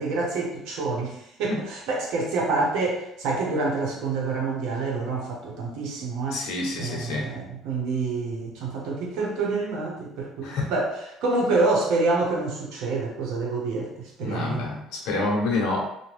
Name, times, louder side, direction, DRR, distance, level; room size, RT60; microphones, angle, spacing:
voice 1, 0.0-6.4 6.8-10.9 11.2-14.7, right 3 dB, 85° right, -1 dB, 0.8 m, -27 dB
voice 2, 6.3-7.3 10.4-10.7 14.2-15.8, left 2 dB, 85° left, -2 dB, 0.7 m, -28 dB
2.7 x 2.2 x 3.2 m, 0.78 s
cardioid pair, 130°, 0 cm